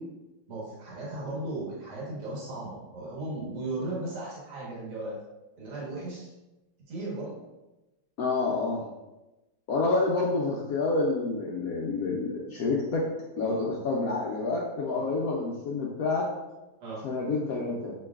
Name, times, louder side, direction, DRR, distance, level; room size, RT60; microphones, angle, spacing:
voice 1, 0.5-5.2 5.6-6.3 6.9-7.4 13.4-13.7 14.9-15.1 16.8-17.0, right 2 dB, 60° right, -5 dB, 1.8 m, -36 dB
voice 2, 8.2-8.8 9.7-13.0 13.4-16.3 17.0-17.9, left 3 dB, 80° left, -3 dB, 0.8 m, -28 dB
6.9 x 3.0 x 2.3 m, 1.0 s
omnidirectional pair, 2.2 m